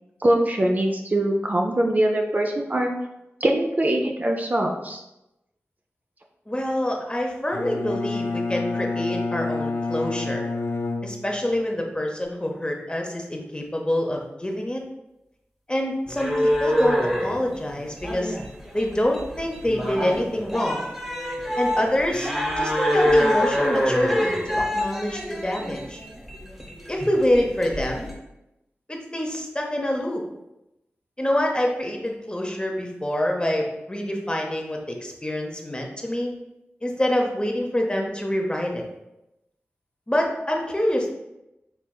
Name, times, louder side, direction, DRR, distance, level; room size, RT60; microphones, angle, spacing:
voice 1, 0.2-2.9 3.4-5.0, right 1 dB, 35° right, 2 dB, 0.5 m, -22 dB
voice 2, 6.5-10.4 11.0-14.8 15.7-18.4 18.7-20.9 21.6-22.3 22.6-26.0 26.9-28.1 28.9-30.2 31.2-36.3 36.8-38.8 40.1-41.1, left 1 dB, 20° left, 1 dB, 0.8 m, -26 dB
Bowed string instrument, 7.5-11.7, left 3 dB, 60° left, 0.3 m, -29 dB
sound 1, 16.1-28.1, equal, 5° right, 1.0 m, -25 dB
4.6 x 3.3 x 2.3 m, 0.90 s
cardioid pair, 40°, 5 cm